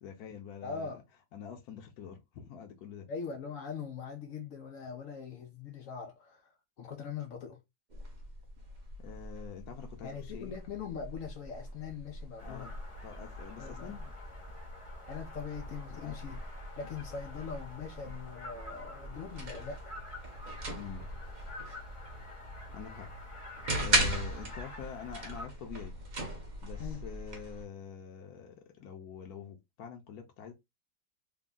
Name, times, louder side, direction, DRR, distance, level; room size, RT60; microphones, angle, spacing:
voice 1, 0.0-1.0 1.3-3.1 9.0-10.5 12.4-12.7 13.0-14.1 15.9-16.2 20.7-21.1 22.7-23.1 23.8-25.9 26.6-30.5, left 7 dB, 65° left, 1.0 m, -46 dB
voice 2, 0.6-1.0 3.1-6.5 6.8-7.6 10.0-12.7 13.6-13.9 15.1-16.4 16.8-19.9 26.8-27.0, left 6 dB, 85° left, 0.7 m, -41 dB
sound 1, 7.9-27.6, right 1 dB, 45° right, 0.6 m, -39 dB
sound 2, 12.4-25.5, left 1 dB, 30° left, 0.5 m, -47 dB
3.5 x 2.2 x 3.7 m
omnidirectional pair, 2.1 m